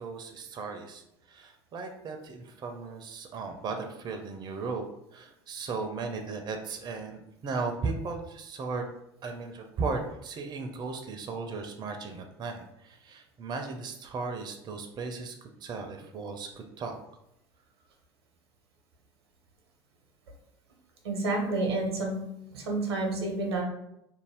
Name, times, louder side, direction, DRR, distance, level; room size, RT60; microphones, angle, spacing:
voice 1, 0.0-4.9 5.1-8.9 9.2-17.0, right 4 dB, 35° right, 4 dB, 0.4 m, -36 dB
voice 2, 21.0-22.2 22.5-23.6, right 2 dB, 85° right, 1 dB, 0.7 m, -29 dB
2.5 x 2.0 x 3.4 m, 0.82 s
hypercardioid pair, 75°, 13 cm